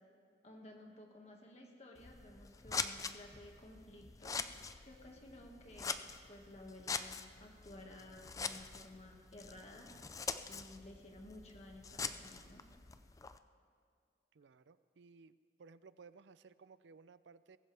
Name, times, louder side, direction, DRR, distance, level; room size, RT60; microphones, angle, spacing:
voice 1, 0.4-9.9 10.5-12.7, left 1 dB, 35° left, 1 dB, 1.9 m, -55 dB
Scissors, 1.9-13.4, left 5 dB, 20° left, 0.4 m, -44 dB
voice 2, 14.3-15.3 15.6-17.6, right 4 dB, 75° right, 15 dB, 0.5 m, -59 dB
22.0 x 15.0 x 3.4 m, 2.2 s
head